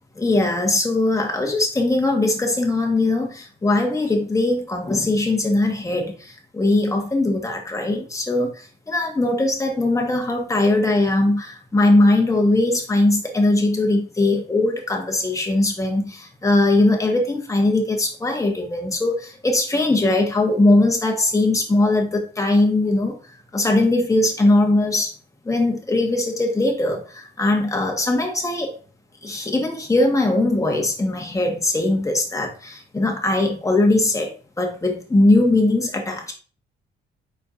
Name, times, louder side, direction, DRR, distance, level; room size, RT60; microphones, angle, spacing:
voice 1, 0.2-6.1 6.5-8.5 8.9-23.2 23.5-25.1 25.4-28.7 29.2-34.3 34.6-36.3, left 2 dB, 15° left, 2 dB, 1.2 m, -20 dB
4.3 x 4.2 x 2.5 m, 0.38 s
cardioid pair, 90°, 20 cm